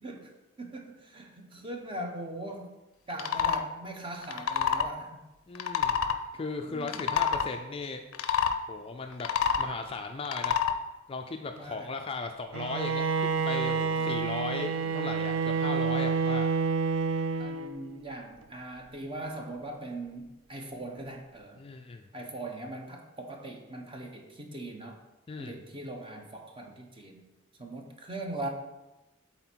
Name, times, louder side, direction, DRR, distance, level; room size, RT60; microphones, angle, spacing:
voice 1, 0.0-2.8 3.1-5.2 6.7-7.0 11.6-11.9 14.0-14.3 17.4-21.6 22.1-25.0 25.4-27.3 27.6-28.5, right 1 dB, 25° right, 2 dB, 0.9 m, -40 dB
sound 1, 3.1-3.6 4.2-4.9 5.5-6.2 6.8-7.5 8.1-8.6 9.1-9.7 10.2-10.8, left 7 dB, 90° left, 0.5 m, -27 dB
voice 2, 5.5-6.0 6.3-8.0 8.7-9.3 9.6-10.6 11.1-16.5 21.6-22.1 25.3-25.6, left 3 dB, 25° left, 5 dB, 0.4 m, -37 dB
Bowed string instrument, 12.5-17.9, right 5 dB, 70° right, 0.4 m, -29 dB
7.7 x 4.0 x 4.5 m, 1.1 s
head